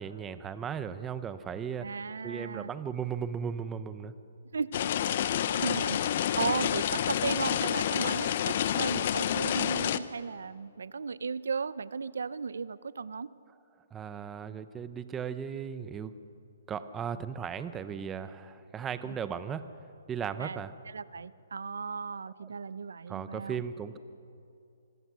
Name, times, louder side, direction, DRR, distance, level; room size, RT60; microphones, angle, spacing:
voice 1, 0.0-1.9 2.2-4.1 13.9-16.1 16.7-19.6 20.1-20.7 23.1-24.0, right 7 dB, 15° right, 12 dB, 0.7 m, -36 dB
voice 2, 1.8-2.7 4.5-4.7 5.5-13.3 19.0-19.2 20.4-23.6, right 5 dB, 85° right, 18 dB, 0.6 m, -36 dB
sound 1, 4.7-10.0, left 10 dB, 45° left, 0.7 m, -29 dB
26.0 x 16.0 x 6.2 m, 2.6 s
hypercardioid pair, 155°, 0 cm